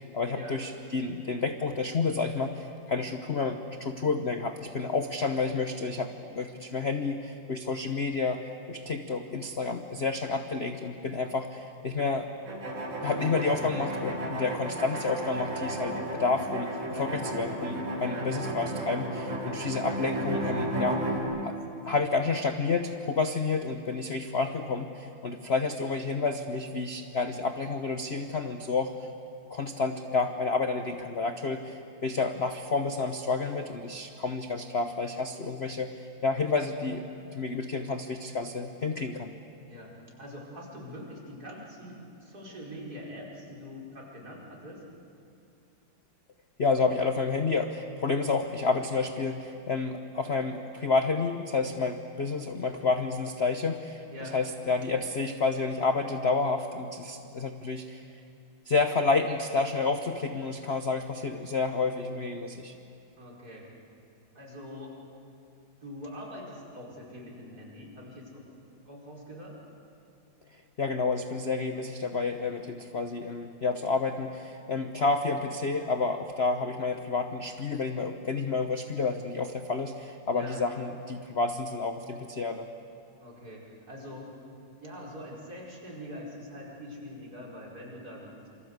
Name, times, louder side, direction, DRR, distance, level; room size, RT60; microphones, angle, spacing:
voice 1, 0.0-8.4 8.7-12.3 13.0-21.0 21.4-21.5 21.8-28.9 29.5-37.1 37.3-39.3 46.6-54.0 54.3-58.1 58.6-62.7 70.8-82.7, left 4 dB, 45° left, 6 dB, 0.9 m, -30 dB
sound 1, 12.5-21.2, right 1 dB, 70° right, 4.8 m, -33 dB
voice 2, 39.7-44.8 54.1-54.4 63.2-63.7 64.3-65.0 65.8-68.4 68.8-69.6 80.3-80.6 83.2-84.3 84.8-88.5, left 1 dB, 45° right, -3 dB, 5.6 m, -43 dB
27.5 x 25.0 x 8.1 m, 2.6 s
omnidirectional pair, 2.2 m